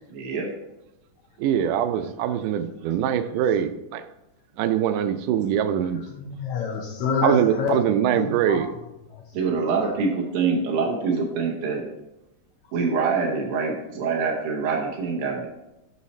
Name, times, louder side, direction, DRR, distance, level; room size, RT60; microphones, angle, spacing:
voice 1, 0.1-0.5 9.3-11.8 12.7-15.5, right 5 dB, 65° right, 1.4 m, -25 dB
voice 2, 1.4-4.0 4.6-6.0 7.2-8.7, right 9 dB, 90° right, 2.1 m, -23 dB
voice 3, 6.1-7.8 8.1-8.6 9.1-9.9, left 6 dB, 75° left, 2.0 m, -28 dB
6.3 x 5.7 x 4.1 m
omnidirectional pair, 3.5 m